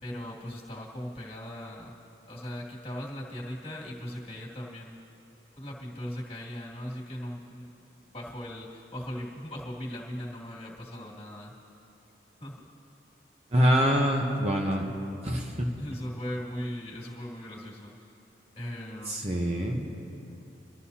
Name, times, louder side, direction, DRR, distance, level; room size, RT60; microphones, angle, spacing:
voice 1, 0.0-1.9 2.3-5.0 5.6-11.5 12.4-12.7 15.8-17.9 18.6-19.3, equal, 30° left, -4 dB, 2.3 m, -39 dB
voice 2, 13.5-14.9 15.2-15.7 19.1-20.0, equal, 35° right, 0 dB, 0.9 m, -25 dB
25.0 x 13.5 x 2.8 m, 2.8 s
head